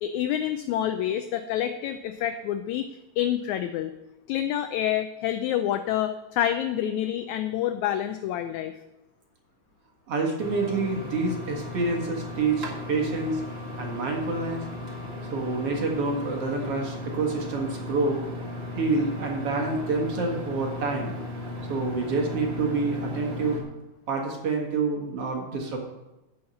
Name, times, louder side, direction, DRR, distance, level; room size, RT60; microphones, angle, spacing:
voice 1, 0.0-2.9 3.2-3.9 4.3-8.7, left 11 dB, 80° left, 9 dB, 1.8 m, -27 dB
voice 2, 10.1-13.4 13.7-14.6 15.3-18.2 18.8-21.2 21.7-23.6 24.1-25.8, right 3 dB, 50° right, 0 dB, 2.5 m, -27 dB
sound 1, 10.4-23.6, left 1 dB, 25° right, 1.5 m, -36 dB
10.5 x 5.6 x 7.6 m, 1.0 s
omnidirectional pair, 3.6 m